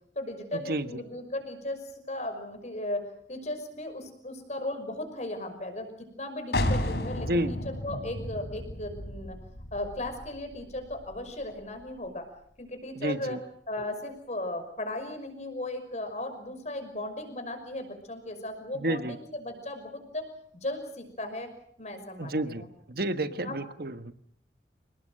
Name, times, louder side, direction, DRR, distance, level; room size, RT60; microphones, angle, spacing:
voice 1, 0.2-3.0 3.3-5.9 6.2-9.4 9.7-12.2 12.6-13.4 13.7-20.3 20.5-21.5 21.8-22.7 23.3-23.6, left 1 dB, 40° left, 7 dB, 5.8 m, -36 dB
sound 1, 6.5-12.1, left 1 dB, 65° left, 3.5 m, -33 dB
voice 2, 13.0-13.4 18.8-19.2 22.2-24.1, right 1 dB, 60° right, 11 dB, 1.4 m, -30 dB
29.0 x 19.0 x 7.7 m, 0.66 s
head